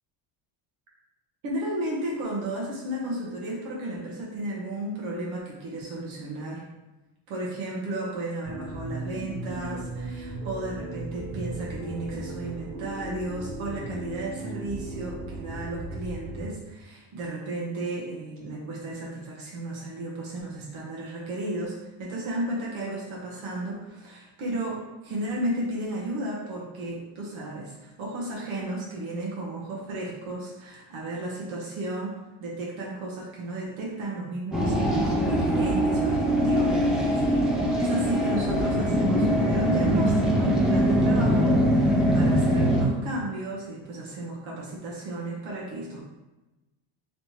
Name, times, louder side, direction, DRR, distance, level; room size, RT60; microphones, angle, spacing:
voice 1, 1.4-6.6 7.3-46.0, right 1 dB, 75° right, -4 dB, 1.1 m, -34 dB
sound 1, 8.4-16.4, right 2 dB, 90° right, 1.2 m, -36 dB
sound 2, 34.5-42.8, equal, ahead, 0.6 m, -22 dB
3.3 x 3.0 x 2.8 m, 1.1 s
cardioid pair, 125°, 49 cm